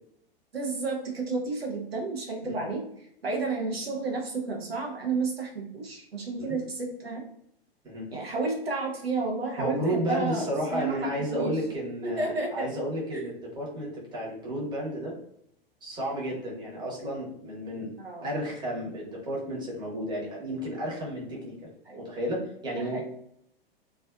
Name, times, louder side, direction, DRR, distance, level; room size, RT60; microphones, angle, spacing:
voice 1, 0.5-7.2 8.1-11.5 12.0-12.7 13.1-13.2 18.0-18.3 21.9-22.0 22.7-23.0, right 3 dB, 85° right, 1 dB, 0.6 m, -31 dB
voice 2, 9.6-15.1 15.8-17.9 18.2-21.7 21.9-23.0, equal, 15° right, -4 dB, 0.9 m, -32 dB
2.4 x 2.3 x 2.3 m, 0.72 s
figure-of-eight pair, 100°, 30 cm